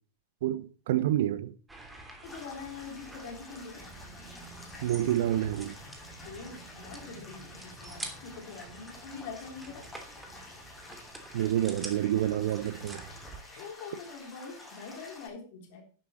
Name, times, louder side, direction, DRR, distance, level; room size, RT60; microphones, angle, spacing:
voice 1, 0.4-1.5 4.8-5.8 11.3-13.0, right 12 dB, 55° right, 0.7 m, -28 dB
sound 1, 1.7-13.4, right 2 dB, 10° right, 2.9 m, -47 dB
voice 2, 2.2-3.9 6.2-9.9 13.6-15.8, left 5 dB, 50° left, 3.4 m, -44 dB
sound 2, 2.2-15.3, left 2 dB, 15° left, 7.4 m, -49 dB
12.0 x 11.0 x 4.3 m
figure-of-eight pair, 90°, 0 cm